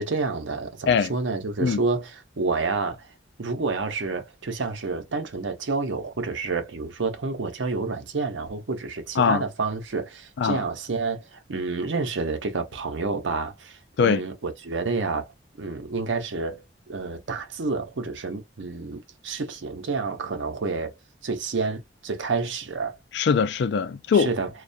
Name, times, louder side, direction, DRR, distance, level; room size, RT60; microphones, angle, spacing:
voice 1, 0.0-3.1 3.4-15.3 15.6-20.9 21.2-23.0 24.1-24.5, right 4 dB, 85° right, 0.7 m, -29 dB
voice 2, 23.1-24.3, left 6 dB, 65° left, 0.3 m, -21 dB
2.3 x 2.1 x 2.5 m
head